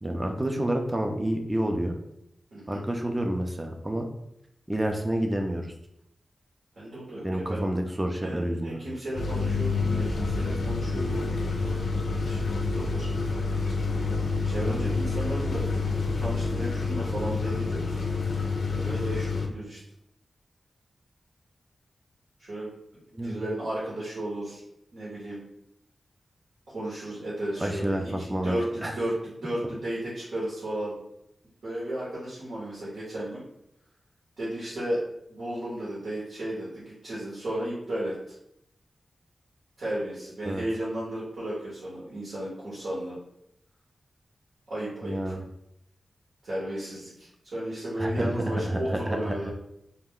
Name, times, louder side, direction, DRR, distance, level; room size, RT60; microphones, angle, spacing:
voice 1, 0.0-1.9 2.7-4.1 4.7-5.7 7.2-8.8 14.6-14.9 23.2-23.4 27.6-28.6 28.8-29.0 40.4-40.6 45.0-45.4 48.0-49.2 49.4-49.5, right 1 dB, 20° right, 3 dB, 0.3 m, -29 dB
voice 2, 2.5-2.8 6.8-7.7 8.2-11.4 11.7-12.4 12.7-13.1 14.4-15.7 16.2-18.2 18.7-19.8 22.4-22.7 23.1-24.6 24.9-25.4 26.7-30.9 31.6-33.4 34.4-38.3 39.8-43.2 44.7-45.3 46.4-49.5, right 1 dB, 80° right, -8 dB, 1.0 m, -34 dB
sound 1, 9.2-19.5, left 3 dB, 75° left, 0.4 m, -28 dB
2.3 x 2.1 x 3.6 m, 0.79 s
wide cardioid pair, 70°, 0 cm